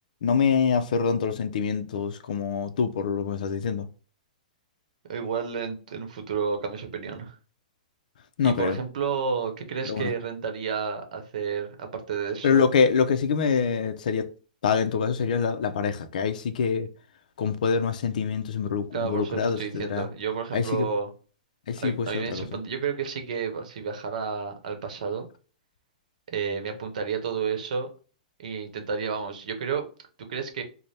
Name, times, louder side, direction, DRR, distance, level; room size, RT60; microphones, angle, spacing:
voice 1, 0.2-3.9 8.4-8.8 9.9-10.1 12.4-14.3 14.6-16.9 17.4-20.1 20.5-20.9 21.7-22.4, left 6 dB, 70° left, 0.4 m, -25 dB
voice 2, 5.1-7.4 8.4-12.7 18.9-21.1 21.8-25.3 26.3-27.9 28.4-29.8 30.2-30.6, right 6 dB, 65° right, 0.8 m, -31 dB
3.2 x 2.1 x 4.1 m
hypercardioid pair, 170°, 5 cm